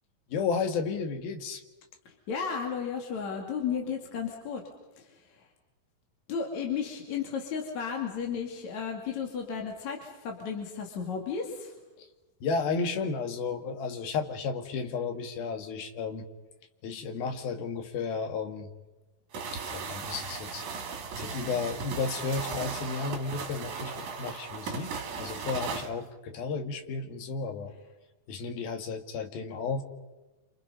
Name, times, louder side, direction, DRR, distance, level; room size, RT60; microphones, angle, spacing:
voice 1, 0.3-1.6 12.0-12.1 12.4-16.3 16.8-18.7 19.5-20.7 21.2-24.9 25.2-27.7 28.3-29.8, left 5 dB, 80° left, 5 dB, 3.7 m, -33 dB
voice 2, 2.1-4.6 5.0-5.5 6.3-11.7, left 6 dB, 55° left, 1 dB, 3.5 m, -34 dB
sound 1, 19.3-25.9, right 5 dB, 55° right, 3.4 m, -37 dB
28.5 x 26.5 x 5.5 m, 1.1 s
omnidirectional pair, 4.2 m